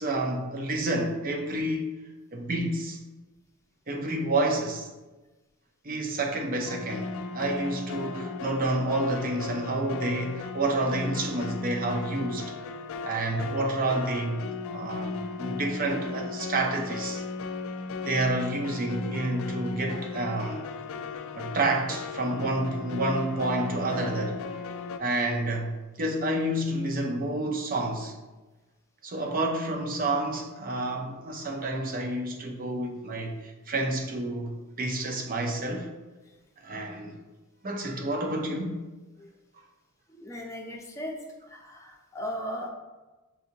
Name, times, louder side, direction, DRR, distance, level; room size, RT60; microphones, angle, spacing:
voice 1, 0.0-1.9 2.3-3.0 3.9-4.9 5.8-12.5 13.0-17.2 18.1-20.6 21.3-24.4 25.0-28.1 29.0-35.9 36.6-37.2 37.6-38.8, right 2 dB, 40° right, 0.6 m, -29 dB
sound 1, 6.7-25.0, left 4 dB, 65° left, 0.3 m, -36 dB
voice 2, 40.1-41.2 41.5-42.7, equal, 15° left, 0.6 m, -37 dB
7.0 x 2.7 x 2.8 m
head